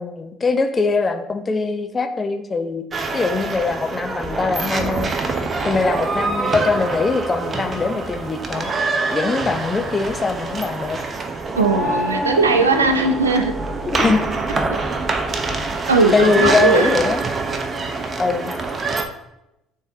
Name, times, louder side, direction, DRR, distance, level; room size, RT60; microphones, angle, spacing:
voice 1, 0.0-2.9 3.1-5.1 5.6-8.7 9.1-11.0 13.9-14.3 16.1-17.2 18.2-18.5, left 4 dB, 30° left, 7 dB, 0.7 m, -22 dB
sound 1, 2.9-19.0, right 3 dB, 35° right, 0.8 m, -25 dB
voice 2, 11.6-13.5 15.9-16.9, right 3 dB, 85° right, 7 dB, 0.5 m, -18 dB
10.0 x 3.8 x 2.8 m, 0.90 s
figure-of-eight pair, 55°, 0 cm